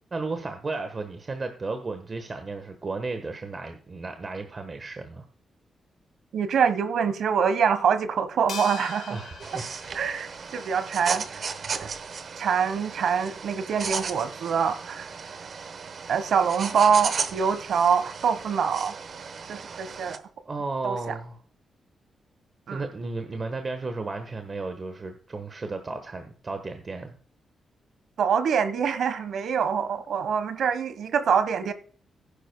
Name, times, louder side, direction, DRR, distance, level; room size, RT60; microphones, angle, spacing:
voice 1, 0.1-5.3 9.1-9.7 20.4-21.4 22.7-27.2, right 3 dB, 35° right, 1.3 m, -34 dB
voice 2, 6.3-9.2 9.9-11.4 11.7-11.9 12.4-15.1 16.1-18.9 19.5-20.2 20.8-21.2 22.7-22.8 28.2-31.7, right 7 dB, 75° right, 1.2 m, -25 dB
sound 1, 8.5-11.0, left 8 dB, 85° left, 1.0 m, -42 dB
sound 2, 9.4-20.2, right 5 dB, 50° right, 1.0 m, -35 dB
16.0 x 10.0 x 2.2 m
cardioid pair, 125°, 0 cm